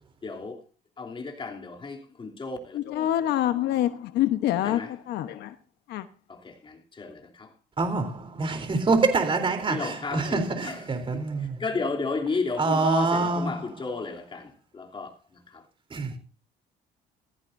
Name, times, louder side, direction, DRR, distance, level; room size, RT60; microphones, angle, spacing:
voice 1, 0.2-0.6 1.0-2.8 4.6-4.9 6.3-7.5 9.7-10.8 11.6-15.1 15.5-15.6, left 4 dB, 30° left, 3.1 m, -33 dB
voice 2, 2.7-3.9 4.2-4.8 5.1-5.3 5.9-6.0, left 12 dB, 80° left, 1.1 m, -24 dB
voice 3, 7.8-11.6 12.6-13.8 15.9-16.1, right 3 dB, 30° right, 3.7 m, -26 dB
16.5 x 14.5 x 2.7 m
cardioid pair, 110°, 17 cm